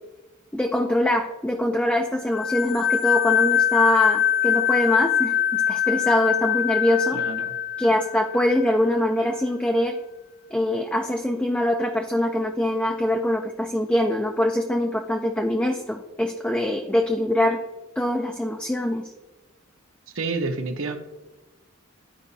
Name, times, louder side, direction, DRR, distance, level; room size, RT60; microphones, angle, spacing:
voice 1, 0.5-7.2 7.8-9.9 10.5-17.6 18.0-19.1, left 1 dB, 5° left, 3 dB, 0.4 m, -23 dB
sound 1, 2.3-8.8, left 9 dB, 60° left, 0.5 m, -23 dB
voice 2, 7.1-7.5 20.1-21.0, right 3 dB, 65° right, 6 dB, 0.9 m, -29 dB
13.0 x 4.9 x 2.7 m, 1.1 s
head